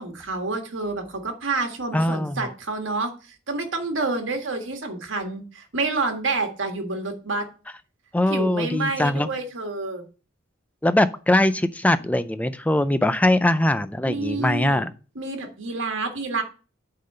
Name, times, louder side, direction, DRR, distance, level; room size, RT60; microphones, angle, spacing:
voice 1, 0.0-7.5 8.3-10.1 14.0-14.8 15.1-16.4, right 3 dB, 75° right, 1.7 m, -28 dB
voice 2, 1.9-2.5 8.1-9.3 10.8-14.9, left 1 dB, 10° left, 0.4 m, -21 dB
8.5 x 3.9 x 6.6 m
head